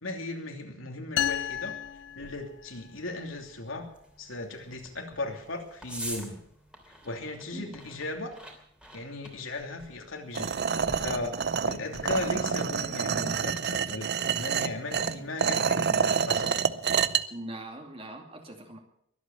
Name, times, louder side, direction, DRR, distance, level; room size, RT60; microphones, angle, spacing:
voice 1, 0.0-1.8 2.1-3.9 4.2-6.4 7.0-8.3 8.9-16.5, left 2 dB, 90° left, 3 dB, 2.9 m, -37 dB
sound 1, 1.2-2.9, left 9 dB, 60° left, 0.6 m, -32 dB
sound 2, 1.4-12.4, right 1 dB, 5° right, 2.9 m, -47 dB
sound 3, 10.4-17.2, right 6 dB, 55° right, 0.6 m, -28 dB
voice 2, 17.3-18.8, right 1 dB, 30° right, 3 dB, 2.5 m, -41 dB
22.5 x 8.5 x 7.1 m, 0.71 s
head